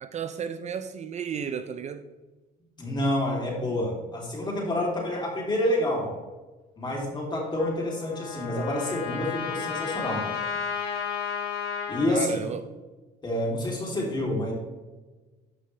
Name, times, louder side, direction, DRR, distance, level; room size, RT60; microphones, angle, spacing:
voice 1, 0.0-2.1 12.1-12.6, right 7 dB, 40° right, 0.5 m, -34 dB
voice 2, 2.8-6.1 6.8-10.4 11.9-12.4 13.2-14.5, left 1 dB, 25° left, 3.1 m, -28 dB
Trumpet, 7.6-12.1, left 6 dB, 75° left, 3.0 m, -33 dB
13.0 x 5.4 x 3.3 m
cardioid pair, 110°, 17 cm